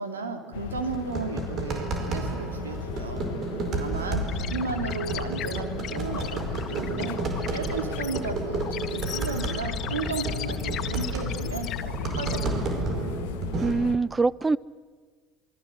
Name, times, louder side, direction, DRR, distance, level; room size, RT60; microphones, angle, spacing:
voice 1, 0.0-3.2 3.7-6.4 6.7-7.2 7.5-8.6 8.9-12.8, right 4 dB, 90° right, 2.9 m, -34 dB
sound 1, 0.5-14.0, left 12 dB, 70° left, 1.2 m, -36 dB
sound 2, 0.7-13.7, right 4 dB, 50° right, 4.8 m, -32 dB
sound 3, 4.3-12.4, left 11 dB, 50° left, 1.8 m, -38 dB
voice 2, 13.6-14.6, right 3 dB, 20° right, 0.8 m, -24 dB
27.5 x 23.0 x 8.0 m
hypercardioid pair, 65°, 0 cm